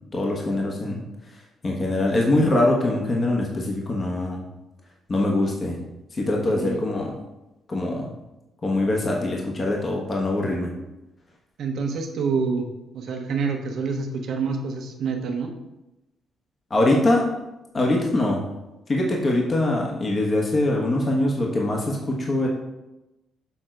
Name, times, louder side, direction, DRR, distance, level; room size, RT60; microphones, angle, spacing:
voice 1, 0.1-1.0 1.6-4.4 5.1-5.8 6.1-7.1 7.7-8.1 8.6-10.7 16.7-17.3 17.7-18.4 18.9-22.5, left 1 dB, 35° left, -1 dB, 1.3 m, -23 dB
voice 2, 6.4-6.8 11.6-12.7 12.9-15.5, right 5 dB, 70° right, 3 dB, 1.1 m, -27 dB
7.0 x 3.7 x 4.5 m, 0.96 s
cardioid pair, 90°, 0 cm